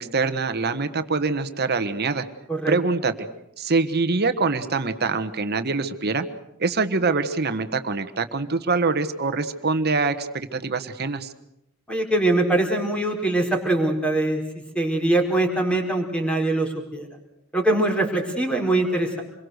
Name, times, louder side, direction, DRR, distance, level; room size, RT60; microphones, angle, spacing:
voice 1, 0.0-2.2 2.7-3.1 3.6-6.2 6.6-11.3, right 4 dB, 50° right, 9 dB, 1.4 m, -24 dB
voice 2, 11.9-14.4 14.7-17.1 17.5-19.2, right 2 dB, 5° left, 3 dB, 4.5 m, -22 dB
27.5 x 22.5 x 6.6 m, 0.86 s
head